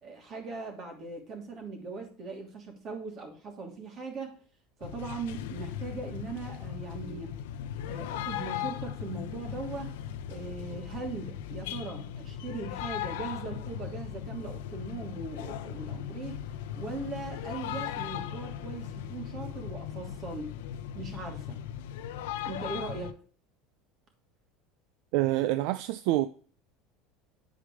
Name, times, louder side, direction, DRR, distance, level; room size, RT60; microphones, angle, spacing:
voice 1, 0.0-4.4 4.8-7.4 7.9-10.0 10.3-20.5 20.9-21.6 22.4-23.1, right 4 dB, 40° right, 2.9 m, -40 dB
sound 1, 4.8-23.1, left 10 dB, 85° left, 0.6 m, -38 dB
voice 2, 25.1-26.3, right 15 dB, 70° right, 0.4 m, -26 dB
9.3 x 5.0 x 4.9 m
supercardioid pair, 115°, 0 cm